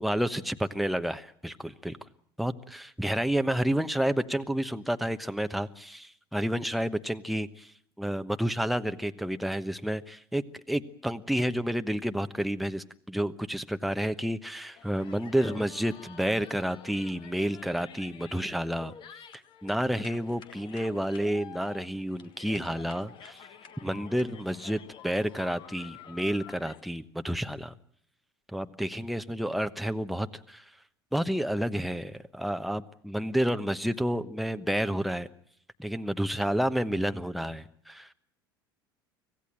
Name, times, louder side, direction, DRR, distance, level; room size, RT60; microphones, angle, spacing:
voice 1, 0.0-2.0 2.4-7.7 8.0-18.9 19.6-23.5 23.8-27.7 28.5-30.6 31.1-35.3 35.8-38.1, equal, ahead, 10 dB, 1.1 m, -30 dB
sound 1, 14.8-26.8, left 8 dB, 45° left, 1.5 m, -49 dB
25.5 x 16.5 x 9.0 m, 0.64 s
figure-of-eight pair, 70°, 12 cm